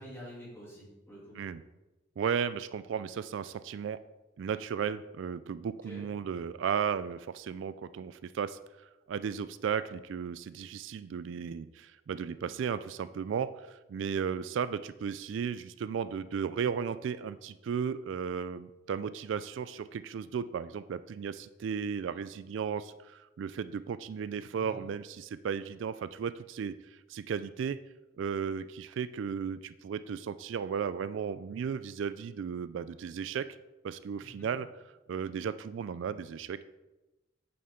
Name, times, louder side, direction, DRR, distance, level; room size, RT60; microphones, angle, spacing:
voice 1, 0.0-1.4 5.9-6.0 24.5-24.8 34.2-34.5, equal, 15° left, -6 dB, 2.9 m, -48 dB
voice 2, 2.2-4.0 4.4-8.6 9.1-27.8 28.2-33.5 33.8-34.7 35.1-36.6, right 7 dB, 70° right, 14 dB, 0.3 m, -35 dB
8.6 x 6.9 x 3.8 m, 1.0 s
head